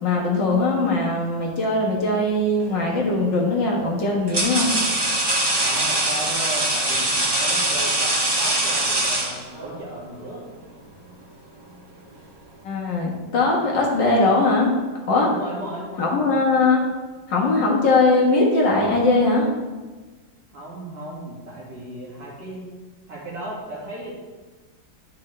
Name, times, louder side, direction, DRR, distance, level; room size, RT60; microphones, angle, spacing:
voice 1, 0.0-4.8 12.6-14.7 15.1-15.3 16.0-16.8 17.3-19.5, left 2 dB, 70° left, -2 dB, 2.1 m, -20 dB
sound 1, 2.7-3.0 3.8-9.8, right 1 dB, 40° right, 0.3 m, -23 dB
voice 2, 5.5-10.4 15.3-16.2 20.5-22.7 23.1-24.1, right 1 dB, 55° right, -5 dB, 2.5 m, -35 dB
10.5 x 5.6 x 3.3 m, 1.3 s
omnidirectional pair, 2.0 m